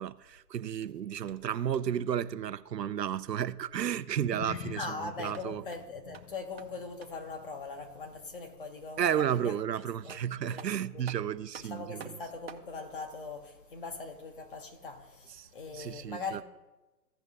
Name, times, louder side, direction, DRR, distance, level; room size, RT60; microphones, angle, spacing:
voice 1, 0.0-5.6 9.0-12.2 15.4-15.5 15.7-16.4, right 9 dB, 80° right, 0.6 m, -33 dB
sound 1, 0.8-2.1 5.1-7.3 9.6-9.7 10.1-12.7, right 6 dB, 40° right, 0.6 m, -52 dB
sound 2, 4.1-8.7 9.0-9.3 9.8-9.9, left 7 dB, 75° left, 0.9 m, -47 dB
voice 2, 4.8-9.6 10.0-11.1 11.6-16.4, left 3 dB, 35° left, 1.0 m, -41 dB
15.5 x 5.3 x 3.6 m
hypercardioid pair, 150°, 49 cm